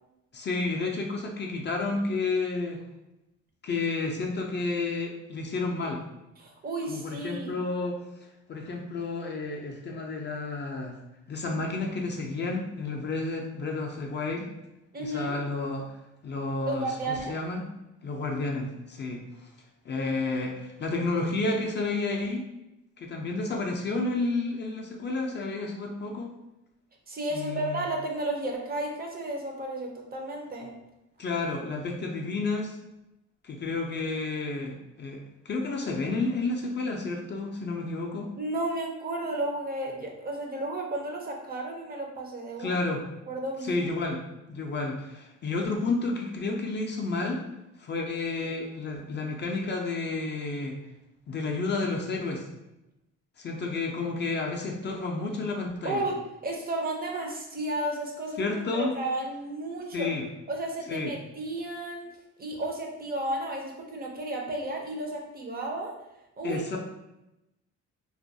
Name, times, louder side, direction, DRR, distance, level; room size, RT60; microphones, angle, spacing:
voice 1, 0.3-2.8 3.6-6.0 6.9-8.0 8.5-10.9 11.3-14.5 15.0-15.9 16.2-17.6 18.0-19.2 19.9-22.5 23.0-26.3 27.3-27.8 31.2-32.8 33.4-38.3 42.6-43.0 43.6-44.2 44.5-47.4 47.8-50.8 51.3-52.5 53.4-56.0 58.4-59.0 59.9-60.3 60.9-61.1 66.4-66.8, left 3 dB, 35° left, 0 dB, 0.4 m, -31 dB
voice 2, 6.4-7.5 14.9-15.4 16.7-17.4 27.1-30.7 38.4-42.8 43.3-43.9 55.8-56.2 56.4-60.1 60.5-62.1 62.4-65.9 66.4-66.8, right 2 dB, 30° right, 1 dB, 0.5 m, -33 dB
2.3 x 2.2 x 2.6 m, 0.93 s
cardioid pair, 90°, 30 cm